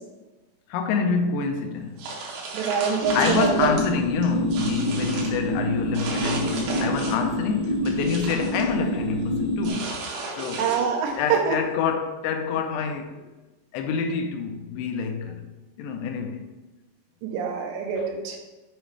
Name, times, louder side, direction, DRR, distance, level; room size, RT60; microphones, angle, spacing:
voice 1, 0.7-2.1 3.1-9.9 10.4-10.7 11.2-13.3 13.7-15.5 15.8-16.5 18.0-18.1, left 6 dB, 85° left, 2.7 m, -27 dB
sound 1, 2.0-3.9 4.2-5.4 5.9-7.3 7.6-8.7 9.6-11.2, right 3 dB, 70° right, 2.8 m, -34 dB
voice 2, 2.5-3.7 10.6-11.6 17.2-18.4, right 6 dB, 90° right, 3.1 m, -25 dB
sound 2, 3.0-9.7, equal, 55° right, 0.9 m, -27 dB
7.6 x 5.0 x 3.2 m
omnidirectional pair, 4.9 m